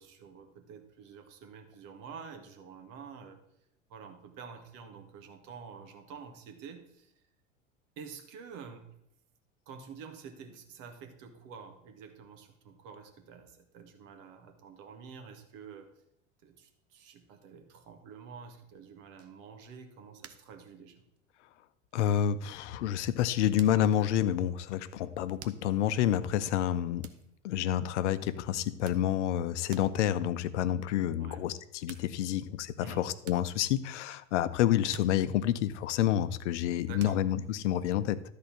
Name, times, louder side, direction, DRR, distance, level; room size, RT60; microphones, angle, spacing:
voice 1, 0.0-3.4 3.9-7.1 8.0-9.0 9.7-15.9 16.4-21.0 31.2-31.4 32.8-33.1 36.9-37.2, right 6 dB, 55° right, 6 dB, 1.8 m, -48 dB
sound 1, 19.2-19.7 20.2-20.6 20.9-21.3 21.9-22.0 23.6-24.2 25.4-25.9 27.0-28.0 28.6-29.4 29.7-30.1 31.5-31.6 31.9-32.7 33.2-34.6 34.9-36.1 37.0-37.6, right 9 dB, 40° right, 0.9 m, -51 dB
voice 2, 21.9-27.0 27.4-38.2, left 11 dB, 65° left, 14 dB, 0.8 m, -29 dB
12.5 x 4.3 x 7.1 m, 0.80 s
hypercardioid pair, 75°, 38 cm